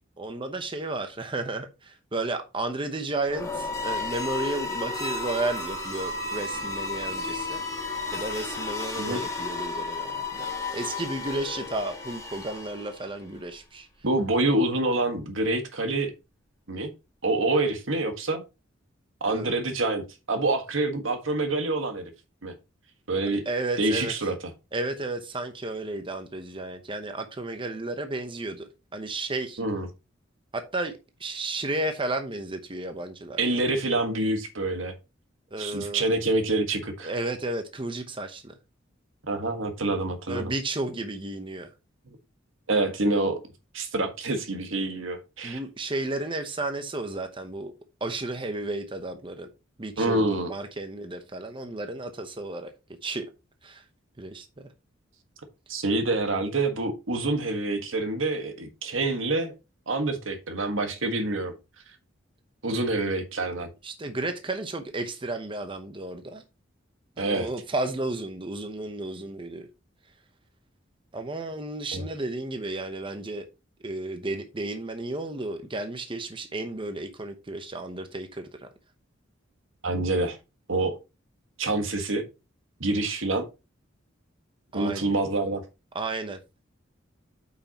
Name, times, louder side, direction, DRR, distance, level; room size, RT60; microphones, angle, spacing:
voice 1, 0.2-7.6 8.1-13.9 19.3-19.6 23.5-24.1 24.7-29.6 30.5-33.4 35.5-36.1 37.0-38.5 40.3-41.7 45.4-47.7 48.0-49.5 49.8-52.7 53.0-53.3 53.6-53.8 54.2-54.7 63.8-66.4 67.2-69.7 71.1-73.5 73.8-78.7 84.7-85.1 85.9-86.4, right 2 dB, 25° right, 0.8 m, -33 dB
sound 1, 3.2-13.2, left 3 dB, 15° left, 1.7 m, -33 dB
voice 2, 14.0-16.1 16.7-16.9 17.2-18.4 19.2-22.1 22.4-22.5 23.1-23.4 23.8-24.3 29.6-29.9 33.4-34.9 35.6-37.1 39.3-40.5 42.7-43.4 43.7-45.6 50.0-50.5 55.7-59.5 59.9-61.5 62.6-63.7 67.2-67.5 71.9-72.1 79.8-80.4 80.7-81.0 81.6-82.2 82.8-83.4 84.7-85.6, right 2 dB, 80° right, 1.5 m, -26 dB
8.4 x 5.7 x 2.9 m
head